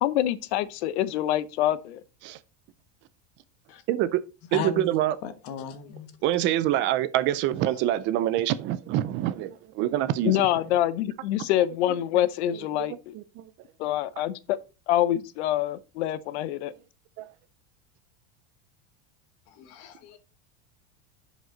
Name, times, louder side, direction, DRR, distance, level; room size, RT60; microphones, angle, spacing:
voice 1, 0.0-2.0 10.2-13.1 13.8-14.6 14.9-16.7, left 12 dB, 90° left, 0.8 m, -26 dB
voice 2, 3.9-4.2 4.5-5.2 6.2-10.6 12.8-12.9 13.1-13.5 17.2-17.3, right 13 dB, 35° right, 0.4 m, -26 dB
voice 3, 4.5-4.8 5.2-6.1 19.5-20.2, left 7 dB, 50° left, 1.3 m, -36 dB
10.5 x 5.1 x 3.9 m
cardioid pair, 170°, 32 cm